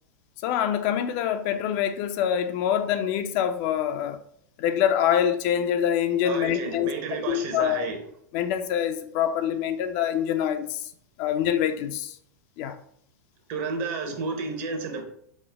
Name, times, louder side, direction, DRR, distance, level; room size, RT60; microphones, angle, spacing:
voice 1, 0.4-4.2 4.6-6.9 7.3-7.8 8.3-10.9 11.2-12.2 12.6-12.8 14.1-14.2, left 9 dB, 50° left, 0.3 m, -25 dB
voice 2, 6.2-8.0 13.5-15.0, right 4 dB, 55° right, 0.8 m, -31 dB
4.2 x 2.1 x 3.3 m
hypercardioid pair, 100°, 9 cm